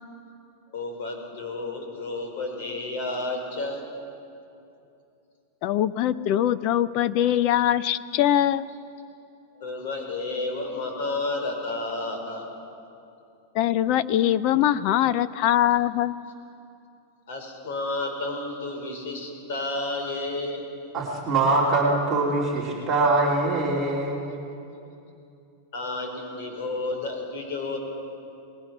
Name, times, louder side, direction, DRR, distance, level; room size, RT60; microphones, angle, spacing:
voice 1, 0.7-3.8 9.6-12.4 17.3-20.6 25.7-27.8, left 2 dB, 50° left, 3 dB, 4.4 m, -31 dB
voice 2, 5.6-8.7 13.5-16.1, left 11 dB, 35° left, 17 dB, 0.5 m, -22 dB
voice 3, 20.9-24.3, right 2 dB, 15° right, -4 dB, 2.6 m, -23 dB
28.5 x 20.0 x 6.1 m, 2.7 s
supercardioid pair, 180°, 0 cm